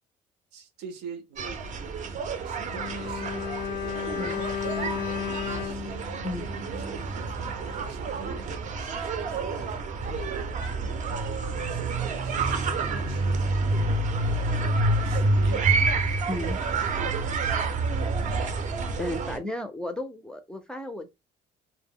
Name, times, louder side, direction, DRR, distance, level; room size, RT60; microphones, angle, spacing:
voice 1, 0.5-1.6 2.1-4.2 4.6-6.0 6.7-11.1 11.7-13.5 14.5-15.8 16.9-17.3 17.9-18.3, right 6 dB, 85° right, 0.7 m, -44 dB
sound 1, 1.4-19.4, right 3 dB, 45° right, 0.5 m, -28 dB
Bowed string instrument, 2.7-7.1 7.4-7.6, left 9 dB, 75° left, 0.4 m, -34 dB
voice 2, 4.1-4.5 6.2-6.5 16.3-16.6 19.0-21.1, left 1 dB, 5° left, 0.4 m, -34 dB
2.1 x 2.0 x 3.5 m
cardioid pair, 110°, 17 cm